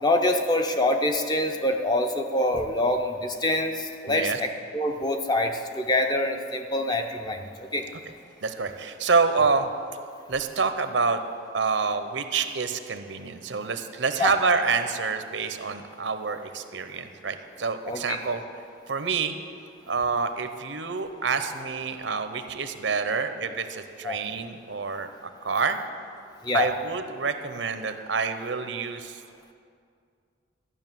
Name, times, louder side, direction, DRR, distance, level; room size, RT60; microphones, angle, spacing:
voice 1, 0.0-7.9 14.2-14.3 17.9-18.2 24.0-24.2 26.4-26.7, left 1 dB, 20° left, 4 dB, 0.7 m, -25 dB
voice 2, 4.1-4.4 8.1-8.2 8.4-9.7 10.3-11.2 11.5-18.4 18.9-19.3 19.9-25.1 25.4-25.8 26.5-29.2, right 4 dB, 80° right, 9 dB, 0.8 m, -27 dB
13.0 x 6.4 x 9.1 m, 2.3 s
head